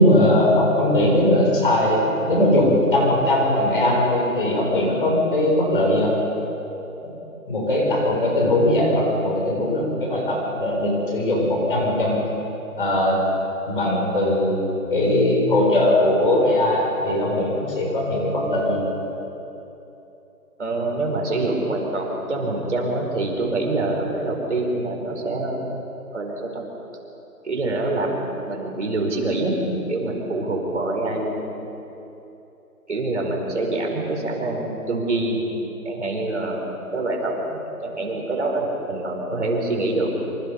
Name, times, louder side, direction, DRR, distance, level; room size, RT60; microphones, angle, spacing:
voice 1, 0.0-6.1 7.0-7.1 7.5-12.2 12.8-13.2 13.7-18.8, left 1 dB, 35° left, -2 dB, 7.3 m, -20 dB
voice 2, 20.6-25.7 26.1-26.6 27.4-28.2 28.5-29.5 29.9-31.4 32.9-35.4 35.8-40.1, right 2 dB, 50° right, 0 dB, 5.8 m, -25 dB
27.5 x 26.5 x 5.8 m, 3.0 s
hypercardioid pair, 175°, 45 cm